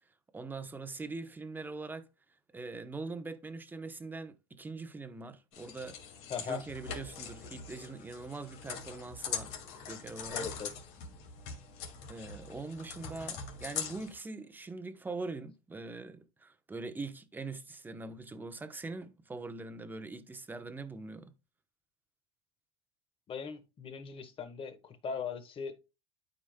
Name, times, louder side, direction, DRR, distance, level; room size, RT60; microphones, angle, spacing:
voice 1, 0.3-2.1 2.5-6.0 6.4-9.5 9.8-10.5 12.0-21.3, right 3 dB, 10° right, 0.9 m, -42 dB
sound 1, 5.5-14.1, left 6 dB, 70° left, 2.2 m, -42 dB
voice 2, 6.3-6.6 10.3-10.7 23.3-25.8, left 6 dB, 35° left, 1.4 m, -39 dB
12.5 x 5.0 x 2.2 m
supercardioid pair, 115°, 16 cm